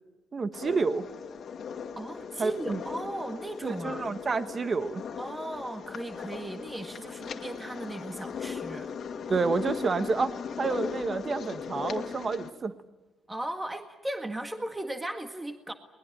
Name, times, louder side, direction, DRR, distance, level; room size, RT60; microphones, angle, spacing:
voice 1, 0.3-1.1 2.4-2.8 3.6-5.0 9.3-12.7, right 4 dB, 40° right, 11 dB, 1.4 m, -29 dB
sound 1, 0.5-12.5, left 6 dB, 60° left, 2.1 m, -38 dB
voice 2, 2.0-4.1 5.2-8.9 13.3-15.7, right 1 dB, 15° right, 6 dB, 1.9 m, -37 dB
21.5 x 20.5 x 9.2 m, 1.2 s
cardioid pair, 90°, 0 cm